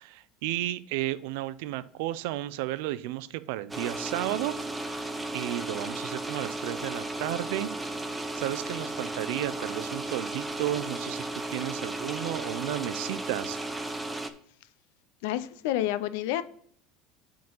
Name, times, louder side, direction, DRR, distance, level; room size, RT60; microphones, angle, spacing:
voice 1, 0.0-5.1 5.3-7.7 8.3-13.6, right 15 dB, 75° right, 15 dB, 0.4 m, -33 dB
sound 1, 3.7-14.3, right 2 dB, 10° right, 0.6 m, -35 dB
voice 2, 15.2-16.4, left 13 dB, 80° left, 14 dB, 0.5 m, -29 dB
7.8 x 3.8 x 5.3 m, 0.62 s
supercardioid pair, 135°, 0 cm